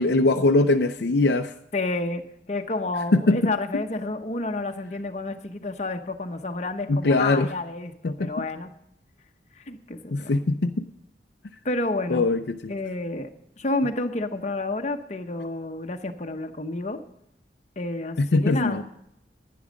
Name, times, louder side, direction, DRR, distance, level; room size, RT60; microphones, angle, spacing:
voice 1, 0.0-1.5 3.1-3.5 6.9-7.5 8.0-8.3 10.1-10.8 12.1-12.7 18.2-18.8, left 2 dB, 60° left, 6 dB, 0.5 m, -21 dB
voice 2, 1.7-8.7 9.5-10.3 11.6-12.3 12.7-13.3 13.6-17.0 17.8-18.8, left 2 dB, 40° left, 6 dB, 0.9 m, -30 dB
11.0 x 10.5 x 5.1 m, 0.77 s
head